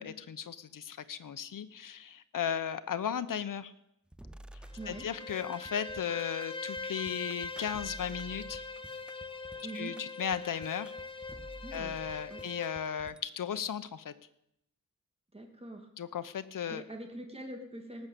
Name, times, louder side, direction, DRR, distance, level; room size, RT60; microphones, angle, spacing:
voice 1, 0.0-3.7 4.9-8.6 9.7-10.9 11.7-14.1 16.0-16.8, left 8 dB, 85° left, 13 dB, 0.9 m, -36 dB
sound 1, 4.1-13.2, right 1 dB, 5° right, 0.5 m, -51 dB
Bowed string instrument, 4.6-12.9, left 3 dB, 15° left, 1.1 m, -42 dB
voice 2, 4.7-5.1 9.6-10.0 11.6-11.9 12.3-12.4 15.3-15.9 16.7-18.1, right 1 dB, 20° right, 3 dB, 2.4 m, -43 dB
18.5 x 6.6 x 8.3 m, 0.78 s
wide cardioid pair, 120°, 32 cm